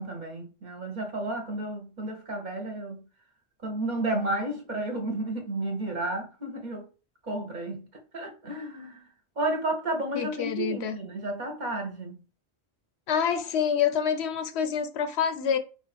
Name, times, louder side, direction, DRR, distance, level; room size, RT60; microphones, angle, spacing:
voice 1, 0.0-3.0 3.6-6.9 7.2-7.9 8.1-9.1 9.4-12.2, right 2 dB, 45° right, 1.1 m, -32 dB
voice 2, 10.1-11.0 13.1-15.6, left 7 dB, 80° left, 0.9 m, -27 dB
4.8 x 2.5 x 4.1 m
omnidirectional pair, 1.1 m